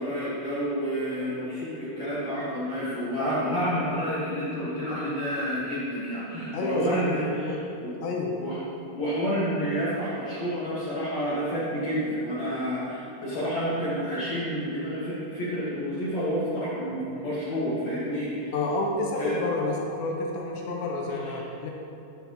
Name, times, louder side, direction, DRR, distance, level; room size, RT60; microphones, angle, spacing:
voice 1, 0.0-7.9 8.4-8.6 8.9-18.5 19.1-19.4 21.1-21.4, equal, 60° left, -10 dB, 1.8 m, -29 dB
voice 2, 6.5-7.6 8.0-8.3 18.5-21.7, left 2 dB, 80° left, 0 dB, 3.1 m, -29 dB
10.5 x 7.4 x 2.9 m, 2.7 s
omnidirectional pair, 5.1 m